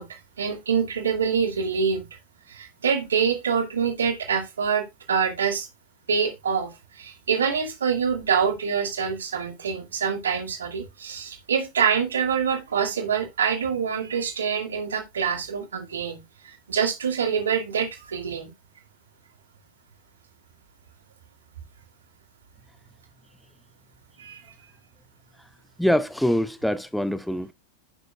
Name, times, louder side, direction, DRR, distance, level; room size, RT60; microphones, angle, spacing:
voice 1, 0.0-2.1 2.5-5.7 6.1-18.5 24.2-24.4, right 6 dB, 65° right, 1.8 m, -26 dB
voice 2, 25.8-27.5, equal, ahead, 0.5 m, -24 dB
9.9 x 5.0 x 2.3 m
figure-of-eight pair, 90°, 0 cm